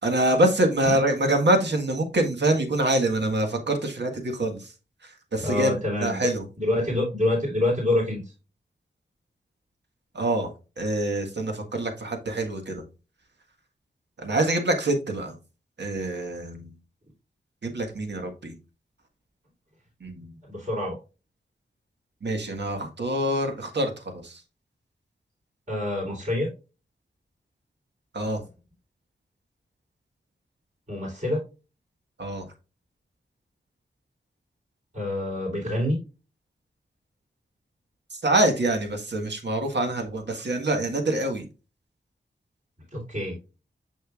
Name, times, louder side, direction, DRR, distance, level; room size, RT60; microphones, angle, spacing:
voice 1, 0.0-4.7 5.0-5.7 6.0-6.4 10.1-10.5 10.8-12.8 14.2-15.3 15.8-16.7 17.6-18.5 20.0-20.3 22.2-24.4 28.1-28.4 32.2-32.5 38.1-41.5, right 1 dB, 65° right, 3 dB, 1.6 m, -25 dB
voice 2, 5.4-6.3 6.6-8.2 20.5-21.0 25.7-26.5 30.9-31.4 34.9-36.0 42.9-43.4, left 1 dB, 40° right, -7 dB, 3.8 m, -26 dB
6.8 x 6.2 x 2.5 m, 0.31 s
cardioid pair, 50°, 19 cm